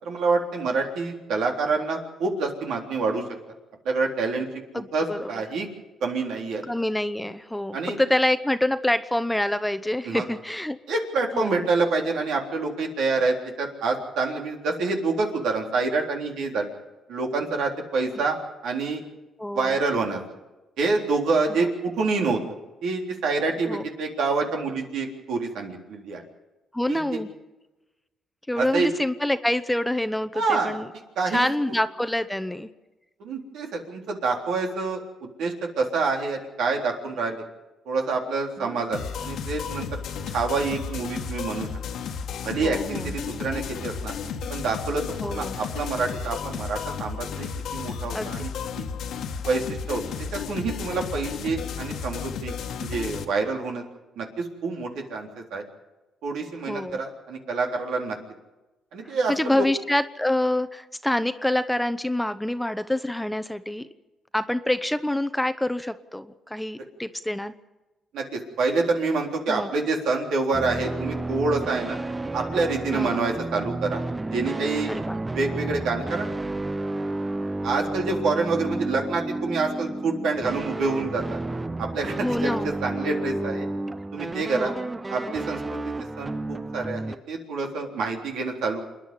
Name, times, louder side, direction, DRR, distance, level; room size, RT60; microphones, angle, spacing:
voice 1, 0.0-3.2 3.9-4.5 4.9-5.7 6.0-6.6 7.7-8.0 10.0-10.2 10.9-16.7 17.1-18.4 18.6-19.0 19.5-20.2 20.8-22.4 22.8-26.2 26.9-27.2 28.6-28.9 30.3-30.8 31.2-31.5 33.2-35.0 35.4-37.4 37.9-39.9 40.3-41.7 42.4-44.1 44.5-48.5 48.8-48.9 49.4-50.0 50.3-52.5 52.8-53.8 54.2-55.6 56.2-58.2 58.9-59.6 68.1-72.0 72.3-74.0 74.3-74.9 75.3-76.3 77.6-81.4 81.8-83.7 84.1-84.7 85.1-85.8 86.2-88.8, right 3 dB, 80° right, 1 dB, 3.7 m, -27 dB
voice 2, 4.7-5.4 6.7-10.8 11.3-11.6 19.4-19.8 21.6-21.7 23.7-23.9 26.7-27.3 28.5-30.9 31.3-32.7 38.6-38.8 42.6-43.2 45.2-45.6 48.1-48.3 56.7-57.0 59.0-63.9 64.3-67.5 69.5-69.7 72.9-73.2 74.9-75.2 82.2-82.7 84.5-84.9, left 1 dB, 5° left, 11 dB, 0.9 m, -26 dB
sound 1, 38.9-53.2, left 6 dB, 75° left, 1.6 m, -33 dB
sound 2, 70.5-87.2, right 2 dB, 20° right, 0.7 m, -31 dB
27.5 x 10.5 x 9.8 m, 1.1 s
cardioid pair, 90°, 0 cm